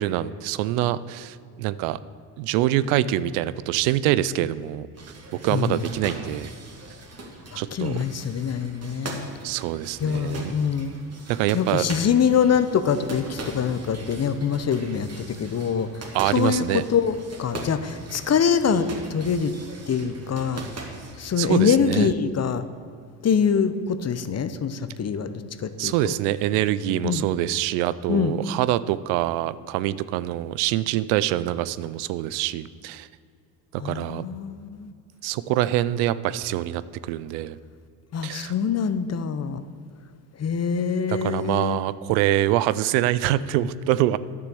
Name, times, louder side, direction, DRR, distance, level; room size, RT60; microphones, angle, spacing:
voice 1, 0.0-2.0 2.4-4.9 5.4-6.5 7.6-8.0 9.4-10.5 11.3-11.8 16.1-16.8 21.4-22.1 25.8-33.1 33.7-34.3 35.2-37.6 38.2-38.5 41.1-44.2, right 14 dB, 80° right, 16 dB, 0.6 m, -25 dB
sound 1, 4.9-21.5, right 2 dB, 30° right, 2.2 m, -40 dB
voice 2, 5.5-5.8 7.5-9.3 10.0-11.0 11.5-19.5 19.9-20.6 21.2-22.7 23.2-25.3 25.6-26.1 27.0-27.2 28.1-28.4 33.8-34.9 38.1-39.6 40.4-41.8, left 7 dB, 30° left, 12 dB, 0.7 m, -24 dB
10.0 x 6.8 x 6.9 m, 2.4 s
supercardioid pair, 75°, 48 cm